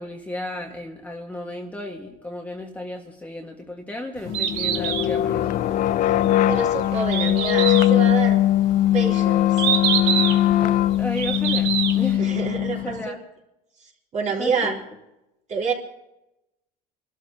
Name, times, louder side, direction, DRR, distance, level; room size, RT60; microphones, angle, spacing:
voice 1, 0.0-5.5 10.6-12.3 12.7-13.2 14.4-14.8, left 1 dB, 10° left, 1 dB, 1.7 m, -34 dB
Bird, 4.2-12.2, right 9 dB, 80° right, 1.8 m, -27 dB
sound 1, 4.3-13.0, left 13 dB, 45° left, 0.5 m, -20 dB
voice 2, 6.5-8.4 8.9-9.5 12.2-13.1 14.1-14.7 15.5-15.7, right 5 dB, 40° right, -1 dB, 4.0 m, -27 dB
28.0 x 13.0 x 2.9 m, 0.90 s
cardioid pair, 115°, 18 cm